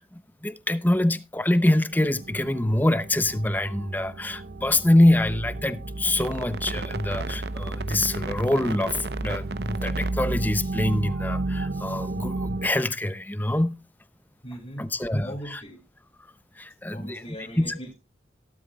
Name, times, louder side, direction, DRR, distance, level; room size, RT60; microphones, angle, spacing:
voice 1, 0.0-13.8 14.8-15.6 16.6-17.2 17.6-17.8, left 1 dB, 10° left, 0.6 m, -25 dB
sound 1, 1.9-12.7, right 2 dB, 60° right, 0.8 m, -32 dB
voice 2, 14.4-14.9 15.2-15.8 16.9-17.9, equal, 30° left, 2.4 m, -39 dB
16.0 x 12.0 x 2.3 m
head